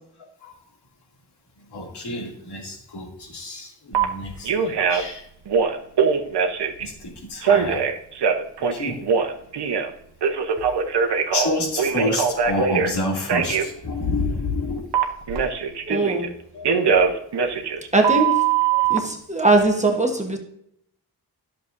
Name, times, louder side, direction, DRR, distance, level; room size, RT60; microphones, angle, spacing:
voice 1, 1.7-5.2 6.8-7.9 8.6-9.0 11.3-14.9 16.5-16.8, left 2 dB, 75° left, -1 dB, 2.6 m, -28 dB
Telephone, 3.9-4.0 4.4-5.1 5.5-6.8 7.4-9.9 10.2-12.9 13.3-13.7 14.9-16.3 16.6-19.0, right 6 dB, 80° right, 0.9 m, -21 dB
voice 2, 15.9-16.3 17.9-18.4 18.9-20.4, right 2 dB, 15° right, 2 dB, 1.1 m, -20 dB
13.0 x 6.9 x 2.6 m, 0.72 s
wide cardioid pair, 145°, 40 cm